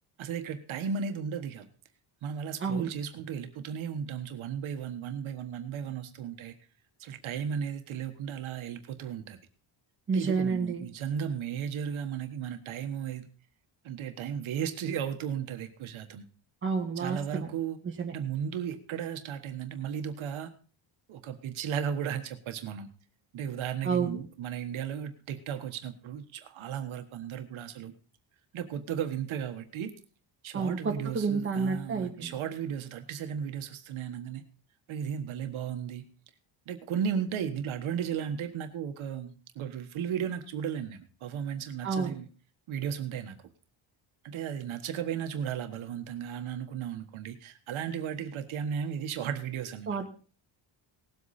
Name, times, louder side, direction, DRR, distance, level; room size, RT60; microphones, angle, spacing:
voice 1, 0.2-1.7 2.2-6.5 7.0-9.4 10.1-13.3 13.8-16.2 17.0-17.8 18.1-20.5 21.1-22.9 23.3-27.9 28.5-29.9 30.4-34.5 34.9-36.1 36.7-42.3 42.7-43.4 44.2-50.0, right 8 dB, 75° right, 7 dB, 1.4 m, -35 dB
voice 2, 10.1-10.9 16.6-17.5 18.0-18.1 23.8-24.2 30.5-32.3 41.8-42.2 49.9-50.1, right 5 dB, 25° right, 1 dB, 1.8 m, -29 dB
18.5 x 8.1 x 4.2 m, 0.39 s
cardioid pair, 180°, 48 cm